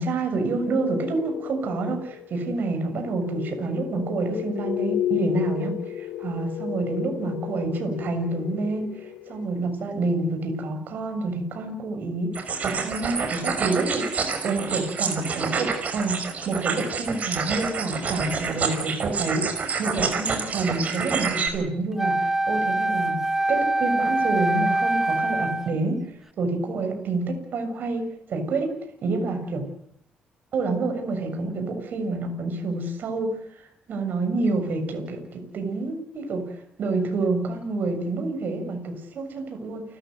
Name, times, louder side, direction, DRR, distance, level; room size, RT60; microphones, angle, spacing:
voice 1, 0.0-23.2 23.5-26.0 26.4-28.7 29.0-29.7 30.5-39.8, right 3 dB, 60° right, 6 dB, 6.9 m, -28 dB
sound 1, 0.7-9.5, left 11 dB, 85° left, 1.3 m, -33 dB
sound 2, 12.3-21.5, right 5 dB, 40° right, 5.6 m, -28 dB
Wind instrument woodwind instrument, 22.0-25.8, right 2 dB, 10° right, 1.1 m, -24 dB
29.5 x 14.5 x 7.9 m, 0.71 s
cardioid pair, 120°, 4 cm